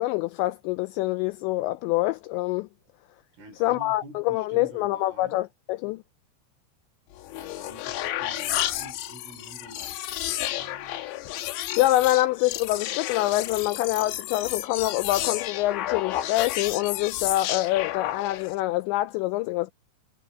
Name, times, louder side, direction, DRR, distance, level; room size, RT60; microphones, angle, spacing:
voice 1, 0.0-2.7 3.6-6.0 11.8-19.7, left 17 dB, 90° left, 2.5 m, -25 dB
voice 2, 3.4-5.4 7.3-11.0, right 1 dB, 85° right, 10.5 m, -48 dB
sound 1, 7.1-18.6, left 13 dB, 70° left, 3.1 m, -32 dB
omnidirectional pair, 5.7 m